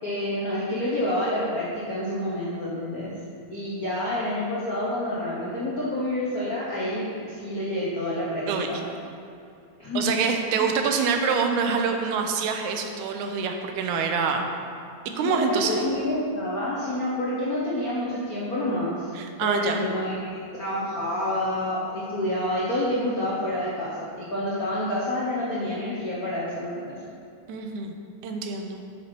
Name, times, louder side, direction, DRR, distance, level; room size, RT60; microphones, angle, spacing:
voice 1, 0.0-3.1 3.5-8.8 9.8-10.1 10.6-10.7 15.2-19.1 19.4-26.9, left 1 dB, 65° left, -7 dB, 0.8 m, -28 dB
voice 2, 8.5-8.8 10.0-14.5 15.2-15.8 19.2-19.8 27.5-27.9 28.2-28.8, right 5 dB, 90° right, 4 dB, 2.1 m, -26 dB
8.2 x 5.5 x 4.5 m, 2.5 s
omnidirectional pair, 3.3 m